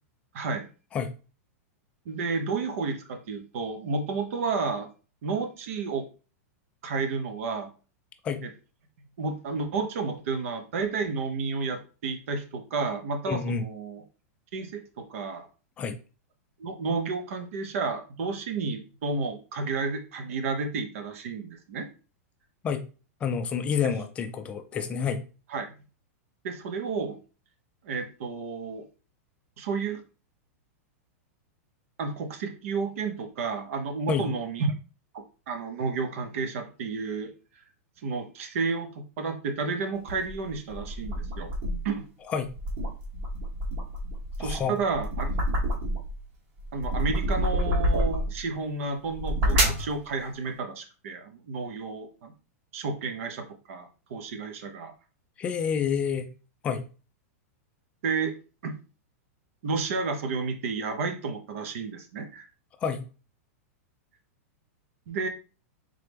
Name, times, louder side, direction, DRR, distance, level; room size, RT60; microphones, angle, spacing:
voice 1, 0.3-0.7 2.1-4.9 5.2-6.1 6.8-7.7 8.4-8.5 9.2-14.0 14.5-15.5 16.6-21.9 25.5-25.7 26.4-27.2 27.8-28.9 29.6-30.0 32.0-34.7 35.1-37.3 38.0-41.5 41.8-42.0 44.4-45.3 46.7-52.3 52.7-54.9 58.0-58.3 58.6-58.8 59.6-62.4 65.1-65.3, right 4 dB, 60° right, 0.9 m, -31 dB
voice 2, 13.3-13.7 15.8-16.0 22.6-22.8 23.2-25.2 34.1-34.3 42.3-42.6 44.4-44.8 55.4-56.3 56.6-56.9 62.8-63.1, left 6 dB, 15° left, 0.4 m, -29 dB
sound 1, 40.1-42.0 42.4-46.2 46.6-48.4 49.0-49.9, equal, 40° right, 1.1 m, -28 dB
3.8 x 3.2 x 3.4 m
supercardioid pair, 170°, 8 cm